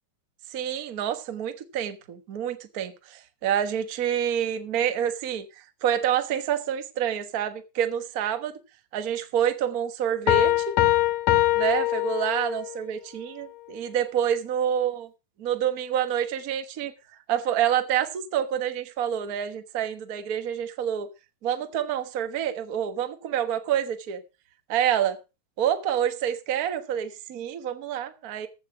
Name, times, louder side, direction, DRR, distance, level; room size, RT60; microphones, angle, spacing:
voice 1, 0.5-8.6 8.9-10.8 11.5-15.0 15.4-16.9 17.3-21.1 21.4-24.2 24.7-25.2 25.6-28.5, right 9 dB, 70° right, 0.8 m, -27 dB
Piano, 10.3-12.8, left 16 dB, 90° left, 2.5 m, -23 dB
15.0 x 8.1 x 4.7 m
omnidirectional pair, 3.7 m